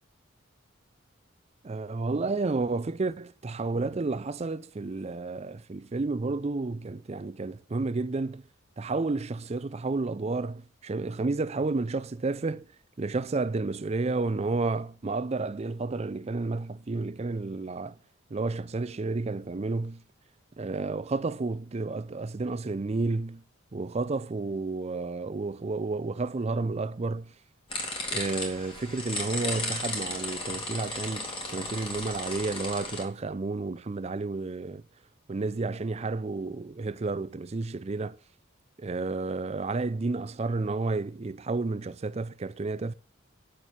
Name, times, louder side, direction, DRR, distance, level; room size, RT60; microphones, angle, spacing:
voice 1, 1.6-8.4 8.8-12.7 13.0-18.0 18.3-20.0 20.6-23.4 23.7-27.3 28.1-34.8 35.3-38.2 38.8-42.9, right 3 dB, 30° right, 0.4 m, -31 dB
sound 1, 27.7-33.0, left 2 dB, 25° left, 2.5 m, -34 dB
9.0 x 6.6 x 8.3 m
head